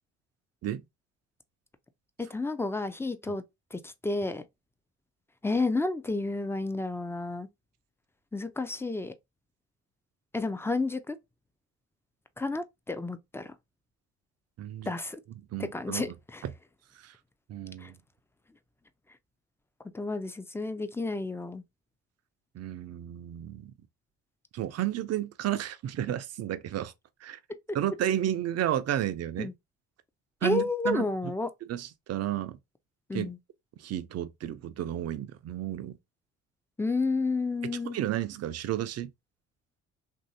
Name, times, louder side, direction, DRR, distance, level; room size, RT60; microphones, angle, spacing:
voice 1, 2.2-3.4 3.7-4.4 5.4-7.5 8.3-9.1 10.3-11.2 12.4-13.5 14.9-15.2 15.7-16.4 17.8-17.9 19.9-21.6 29.4-29.5 30.4-31.5 33.1-33.4 36.8-38.0, left 3 dB, 5° left, 0.5 m, -31 dB
voice 2, 14.6-14.9 15.5-16.1 17.0-17.1 17.5-18.0 22.5-23.7 24.5-26.9 27.2-27.4 27.7-29.5 30.4-31.0 31.7-32.6 33.1-33.3 33.8-36.0 37.9-39.1, right 12 dB, 50° right, 0.6 m, -32 dB
3.0 x 2.7 x 2.7 m
hypercardioid pair, 55°, 34 cm